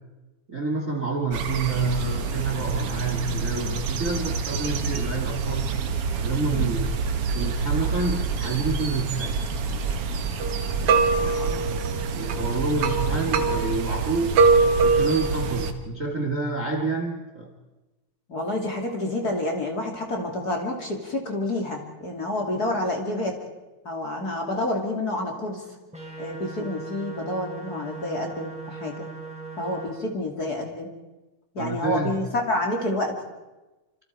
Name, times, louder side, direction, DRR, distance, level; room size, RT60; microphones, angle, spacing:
voice 1, 0.5-5.7 6.2-6.9 7.3-9.4 10.7-11.8 12.1-14.3 14.8-17.5 31.6-32.2, right 3 dB, 30° right, 3 dB, 1.7 m, -28 dB
sound 1, 1.3-15.7, right 4 dB, 55° right, 1.8 m, -25 dB
voice 2, 18.3-23.4 23.8-25.6 26.2-29.1 29.6-30.9 31.5-33.1, left 1 dB, 30° left, 1 dB, 3.0 m, -28 dB
sound 2, 25.9-29.9, right 4 dB, ahead, 5.5 m, -39 dB
27.5 x 27.0 x 4.7 m, 1.1 s
omnidirectional pair, 3.8 m